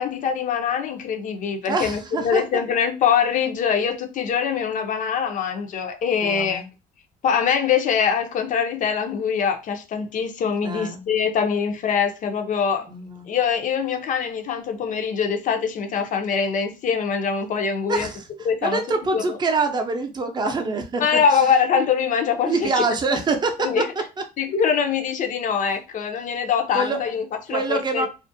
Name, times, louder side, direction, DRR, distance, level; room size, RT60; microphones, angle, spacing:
voice 1, 0.0-6.6 7.2-12.9 13.3-18.1 18.5-18.8 19.1-19.4 21.0-22.8 23.6-23.8 24.4-28.1, left 7 dB, 50° left, 0.5 m, -23 dB
voice 2, 1.7-2.4 6.2-6.7 10.6-11.0 12.9-13.3 17.9-18.2 18.6-21.2 22.4-23.8 26.7-27.0 27.5-28.1, right 3 dB, 25° right, 0.5 m, -25 dB
2.4 x 2.1 x 2.5 m
cardioid pair, 110°, 17 cm